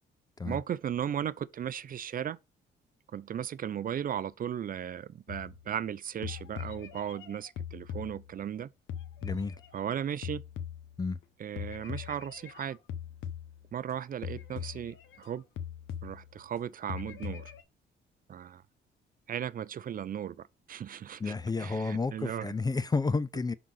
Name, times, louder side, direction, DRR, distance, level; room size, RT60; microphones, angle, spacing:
voice 1, 0.5-2.4 3.1-8.7 9.7-10.4 11.4-12.8 13.7-15.4 16.0-17.5 18.3-18.6 19.3-21.3 21.6-22.5, right 9 dB, 45° right, 0.5 m, -36 dB
sound 1, 5.3-5.9 6.2-8.6 8.9-11.2 11.6-13.9 14.2-15.3 15.6-16.6 16.9-17.6, left 9 dB, 80° left, 0.9 m, -41 dB
voice 2, 9.2-9.6 11.0-11.2 21.2-23.5, left 4 dB, 20° left, 0.4 m, -31 dB
5.8 x 3.9 x 5.6 m
cardioid pair, 90°, 20 cm